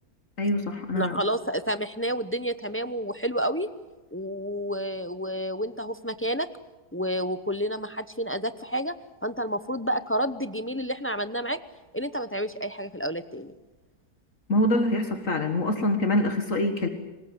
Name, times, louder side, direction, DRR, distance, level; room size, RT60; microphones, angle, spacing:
voice 1, 0.4-1.2 14.5-16.9, left 1 dB, 55° left, 6 dB, 2.0 m, -25 dB
voice 2, 0.9-3.7 4.1-6.5 6.9-8.9 9.2-11.6 11.9-13.5, equal, 15° left, 12 dB, 0.4 m, -30 dB
24.5 x 20.0 x 8.0 m, 1.2 s
omnidirectional pair, 1.7 m